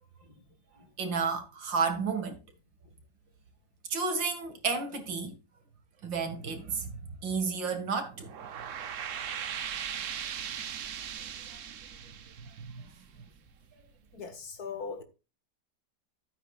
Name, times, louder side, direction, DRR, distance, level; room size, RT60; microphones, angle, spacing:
voice 1, 1.0-2.4 3.9-5.4 6.0-6.9 7.2-8.3 12.7-12.8, right 5 dB, 90° right, 2.7 m, -31 dB
sound 1, 8.1-13.4, right 8 dB, 55° right, 1.0 m, -39 dB
voice 2, 14.1-15.0, left 5 dB, 60° left, 2.2 m, -39 dB
13.0 x 9.0 x 2.4 m
omnidirectional pair, 1.9 m